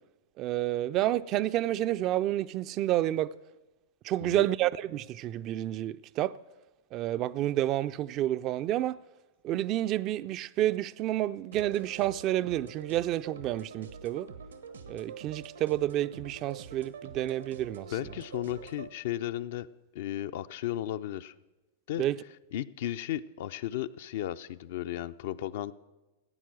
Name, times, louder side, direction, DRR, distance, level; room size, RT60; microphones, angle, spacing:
voice 1, 0.4-3.3 4.0-6.4 6.9-9.0 9.4-14.3 14.9-17.9 22.0-22.2, right 13 dB, 40° right, 0.3 m, -29 dB
sound 1, 11.5-18.9, right 6 dB, 85° right, 1.1 m, -46 dB
voice 2, 17.9-19.7 19.9-21.3 21.9-22.1 22.5-25.7, left 12 dB, 60° left, 0.4 m, -34 dB
15.0 x 9.3 x 6.2 m
hypercardioid pair, 105°, 0 cm